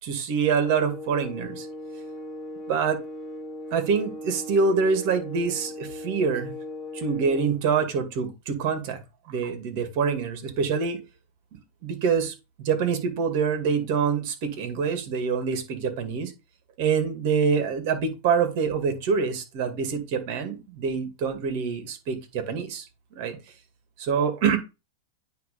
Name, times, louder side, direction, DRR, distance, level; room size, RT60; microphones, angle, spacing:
voice 1, 0.0-1.7 2.7-3.0 3.7-6.5 6.9-9.0 9.3-11.0 11.8-16.3 16.8-22.9 23.1-23.4 24.0-24.6, right 6 dB, 55° right, 2.2 m, -25 dB
sound 1, 0.6-7.7, left 1 dB, 15° left, 1.8 m, -38 dB
9.3 x 3.2 x 5.3 m
hypercardioid pair, 110°, 0 cm